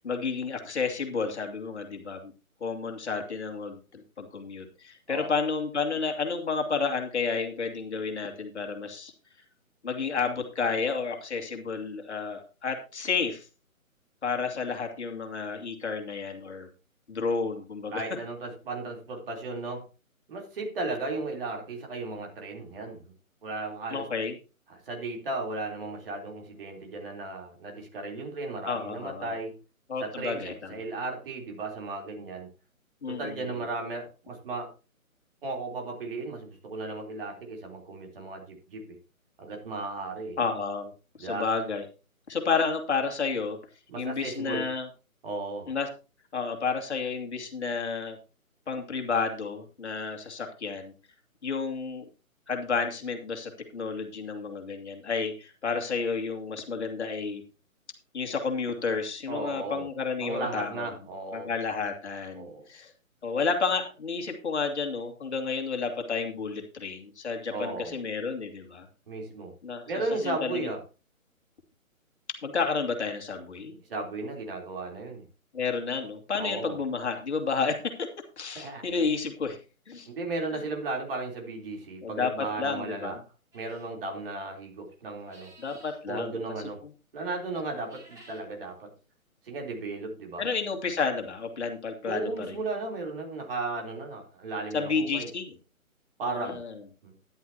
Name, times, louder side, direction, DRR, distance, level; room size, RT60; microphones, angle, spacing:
voice 1, 0.0-2.3 2.6-9.1 9.8-13.5 14.2-16.7 17.1-18.0 23.9-24.3 28.6-29.3 29.9-30.7 33.0-33.4 40.4-40.9 41.2-41.9 42.3-43.6 44.0-44.9 45.7-45.9 46.3-48.2 48.7-50.9 51.4-52.0 52.5-57.4 58.1-60.9 61.3-62.9 63.2-68.9 69.6-70.7 72.4-73.8 75.5-78.1 78.4-79.6 79.9-80.1 82.0-83.2 85.6-86.4 90.4-92.6 94.7-95.4 96.3-96.7, left 5 dB, 50° left, 3 dB, 2.6 m, -31 dB
voice 2, 17.9-19.8 20.3-23.1 23.4-24.1 24.7-29.6 30.0-32.5 33.1-34.7 35.4-39.0 39.4-40.4 41.2-41.5 43.9-44.7 45.2-45.7 59.3-59.9 60.2-61.5 62.3-62.7 67.5-68.0 69.1-69.5 69.9-70.8 73.9-75.3 76.3-76.8 78.6-78.9 80.1-83.2 83.5-85.5 86.1-86.8 87.1-88.9 89.4-90.5 92.1-95.3 96.2-96.6 97.0-97.1, right 2 dB, 40° right, 2 dB, 3.7 m, -35 dB
sound 1, 83.5-83.9 85.2-86.0 87.7-88.5, right 1 dB, 5° right, 2.3 m, -54 dB
12.5 x 11.0 x 2.9 m, 0.32 s
figure-of-eight pair, 145°, 42 cm